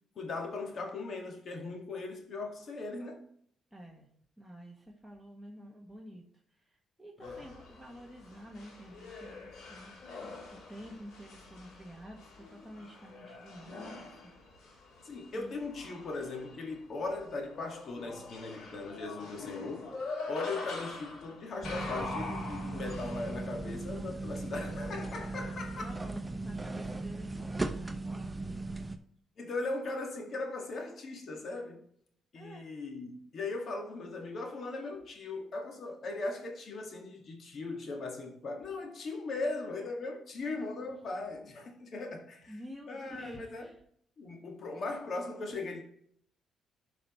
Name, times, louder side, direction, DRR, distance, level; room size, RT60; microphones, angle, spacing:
voice 1, 0.2-3.3 7.2-7.4 15.0-25.9 29.4-31.9 32.3-42.6 42.9-43.7 44.2-45.9, left 3 dB, 55° left, 1.9 m, -39 dB
voice 2, 3.7-4.1 4.4-14.3 15.3-15.6 25.8-28.3 32.3-32.7 42.5-43.8, equal, ahead, 1.6 m, -50 dB
sound 1, 7.2-24.0, left 3 dB, 75° left, 3.3 m, -44 dB
sound 2, 21.6-29.0, right 2 dB, 15° right, 0.9 m, -38 dB
11.5 x 5.2 x 3.2 m
cardioid pair, 90°, 0 cm